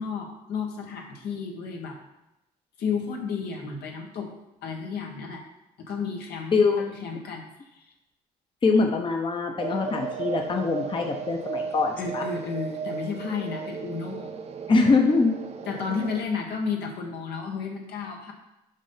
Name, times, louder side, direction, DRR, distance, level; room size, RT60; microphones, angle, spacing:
voice 1, 0.0-2.0 2.8-4.3 4.6-5.4 5.9-7.8 12.0-14.4 15.7-18.3, left 5 dB, 75° left, 1 dB, 1.6 m, -32 dB
voice 2, 6.5-6.8 8.6-12.2 14.7-15.3, left 4 dB, 30° left, 3 dB, 0.8 m, -23 dB
sound 1, 9.6-16.2, right 5 dB, 40° right, 0.7 m, -35 dB
6.3 x 5.5 x 5.7 m, 0.90 s
cardioid pair, 110°, 17 cm